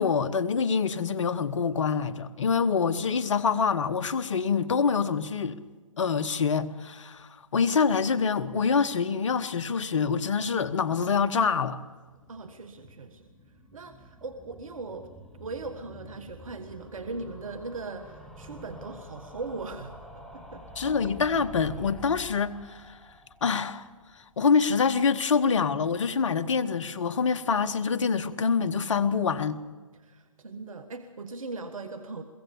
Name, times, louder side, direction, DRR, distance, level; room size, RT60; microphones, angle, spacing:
voice 1, 0.0-5.6 6.0-11.8 20.8-23.0 23.4-23.9 24.4-29.6, left 5 dB, 60° left, 1.1 m, -26 dB
sound 1, 12.1-25.0 25.3-25.4 25.6-25.7 25.9-26.0, equal, ahead, 1.6 m, -48 dB
voice 2, 12.3-13.2 13.7-15.1 15.4-20.0 20.3-20.6 30.0-32.2, right 3 dB, 70° right, 1.5 m, -39 dB
23.0 x 16.0 x 7.1 m
figure-of-eight pair, 140°, 18 cm